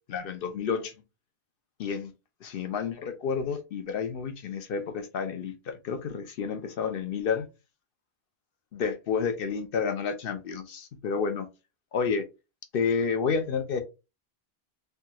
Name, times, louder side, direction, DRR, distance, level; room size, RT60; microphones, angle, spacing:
voice 1, 0.1-0.9 1.8-2.1 2.4-7.5 8.7-11.5 11.9-12.2 12.7-13.8, left 6 dB, 65° left, 0.7 m, -30 dB
3.3 x 2.2 x 2.9 m
omnidirectional pair, 1.1 m